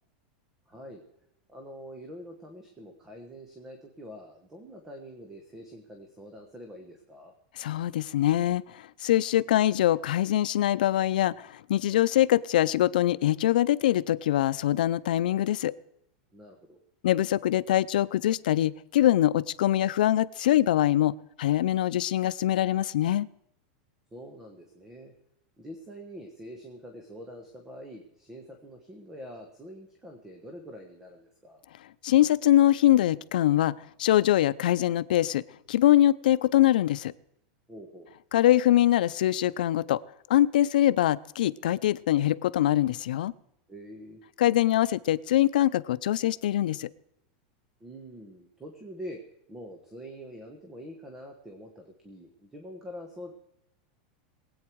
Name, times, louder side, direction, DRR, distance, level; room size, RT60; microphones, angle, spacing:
voice 1, 0.7-1.0 1.5-7.3 16.3-16.8 24.1-25.1 25.6-31.6 37.7-38.1 43.7-44.2 47.8-49.2 49.5-53.3, equal, 10° right, 4 dB, 1.4 m, -45 dB
voice 2, 7.6-15.7 17.0-23.3 32.0-35.4 35.7-37.1 38.3-40.0 40.3-43.3 44.4-46.9, left 13 dB, 85° left, 15 dB, 0.6 m, -23 dB
22.5 x 8.7 x 4.7 m, 0.79 s
supercardioid pair, 170°, 5 cm